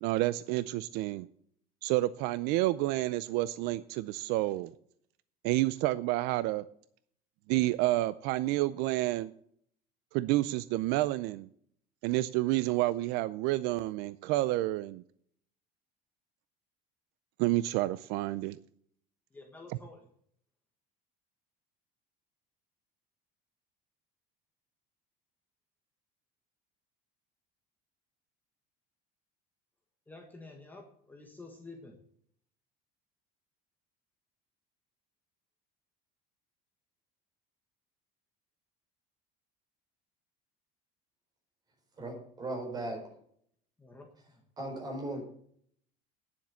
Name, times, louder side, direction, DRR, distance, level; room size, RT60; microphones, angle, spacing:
voice 1, 0.0-1.3 1.8-4.7 5.4-6.6 7.5-9.3 10.1-11.5 12.0-15.0 17.4-18.6, right 17 dB, 65° right, 16 dB, 0.5 m, -29 dB
voice 2, 19.3-20.1 30.1-32.0 43.8-44.4, left 3 dB, 10° left, 2 dB, 1.5 m, -50 dB
voice 3, 42.0-43.0 44.6-45.2, right 1 dB, 20° right, 0 dB, 4.5 m, -37 dB
10.0 x 7.3 x 8.0 m, 0.64 s
cardioid pair, 170°, 18 cm